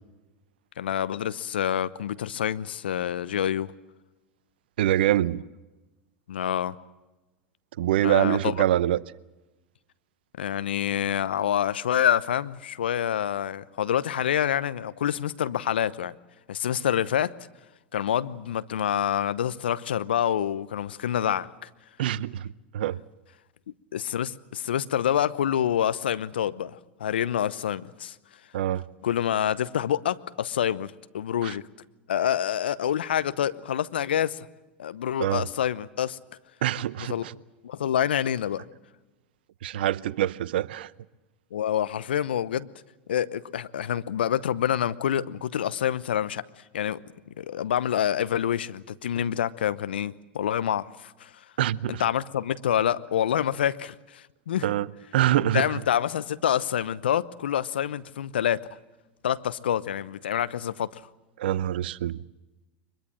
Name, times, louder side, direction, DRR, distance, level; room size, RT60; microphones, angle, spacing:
voice 1, 0.8-3.7 6.3-6.7 8.0-8.5 10.4-16.1 16.5-17.3 17.9-21.7 23.9-28.1 29.0-31.6 32.1-34.5 34.8-36.2 37.0-37.3 37.6-38.6 41.5-42.7 43.1-46.4 46.7-47.0 47.4-51.3 51.9-54.7 55.5-58.7 59.2-61.0, left 10 dB, 80° left, 0.9 m, -27 dB
voice 2, 4.8-5.4 7.8-9.0 22.0-23.0 28.5-28.8 31.4-31.5 35.2-35.5 36.6-37.3 39.6-40.9 51.6-52.0 54.6-54.9 55.1-55.7 61.4-62.2, right 13 dB, 70° right, 0.7 m, -25 dB
23.5 x 22.0 x 7.7 m
hypercardioid pair, 90°, 6 cm